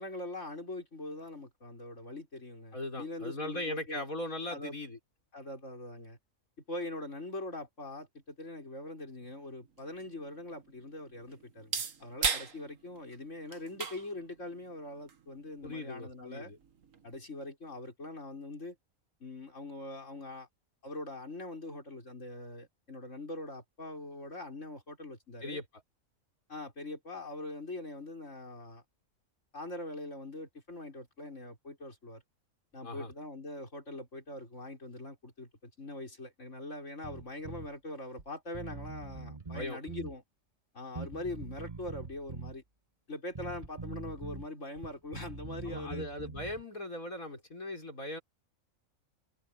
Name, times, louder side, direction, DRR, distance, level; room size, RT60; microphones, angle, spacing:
voice 1, 0.0-4.0 4.5-4.8 5.3-6.2 6.7-16.5 17.0-18.8 19.2-20.5 20.8-25.6 26.5-28.8 29.5-32.2 32.7-40.2 40.7-42.6 43.1-46.3, left 2 dB, 60° left, 6.6 m, -42 dB
voice 2, 2.7-5.0 15.6-16.6 25.4-25.6 32.8-33.1 39.5-39.8 45.7-48.2, left 1 dB, 80° left, 6.5 m, -39 dB
sound 1, 9.2-17.2, right 5 dB, 70° right, 1.8 m, -40 dB
Bass guitar, 37.0-37.7 38.2-38.3 38.5-40.2 41.0-42.6 43.3-44.5 44.8-46.6, right 4 dB, 25° right, 1.4 m, -43 dB
omnidirectional pair, 1.4 m